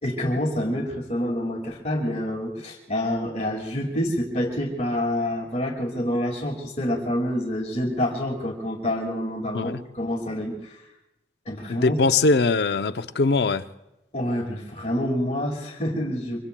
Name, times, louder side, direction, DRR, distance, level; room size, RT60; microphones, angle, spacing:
voice 1, 0.0-10.8 11.5-12.0 14.1-16.4, left 1 dB, 35° left, 2.1 m, -27 dB
voice 2, 11.7-13.6, left 3 dB, 65° left, 0.6 m, -21 dB
25.5 x 24.0 x 2.2 m
head